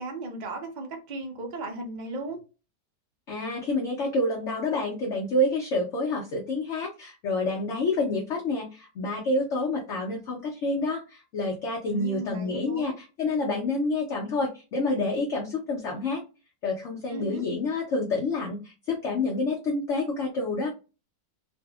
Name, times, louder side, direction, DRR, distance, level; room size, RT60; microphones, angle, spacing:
voice 1, 0.0-2.4 11.9-12.9 17.1-17.4, right 2 dB, 70° right, 0.4 m, -36 dB
voice 2, 3.3-16.2 16.6-20.7, left 2 dB, 60° left, 0.7 m, -28 dB
2.7 x 2.5 x 2.3 m
omnidirectional pair, 1.9 m